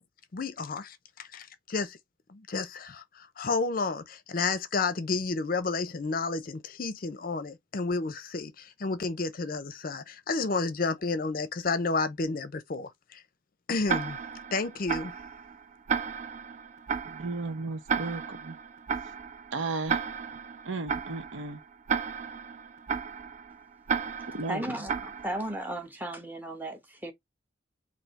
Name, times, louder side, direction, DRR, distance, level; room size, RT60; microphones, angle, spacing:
voice 1, 0.3-2.0 2.3-13.2 13.7-14.2 14.5-15.1, left 3 dB, 45° left, 0.5 m, -31 dB
Tick-tock, 13.9-25.7, right 6 dB, 35° right, 0.3 m, -34 dB
voice 2, 17.0-18.6 19.5-20.1 20.6-21.6 24.3-24.7, right 3 dB, 80° right, 0.8 m, -34 dB
voice 3, 24.5-27.1, right 1 dB, 10° right, 0.8 m, -35 dB
3.5 x 2.7 x 4.0 m
head